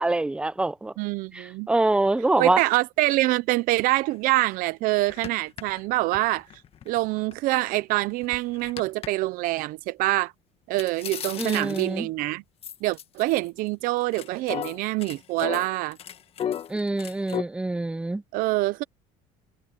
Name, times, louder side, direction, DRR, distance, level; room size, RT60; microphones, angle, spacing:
voice 1, 0.0-0.9 1.3-2.6 11.4-12.1 16.7-18.2, right 2 dB, 5° right, 0.7 m, -25 dB
voice 2, 1.0-1.7 2.4-6.5 6.9-10.3 10.7-12.4 12.8-16.0 18.3-18.8, right 19 dB, 65° right, 0.7 m, -25 dB
sound 1, 4.1-4.2 4.5-4.6 5.1-7.3 7.8-9.1 10.8-12.1 12.6-13.7 14.0-17.4, left 9 dB, 40° left, 1.4 m, -35 dB
cardioid pair, 130°, 16 cm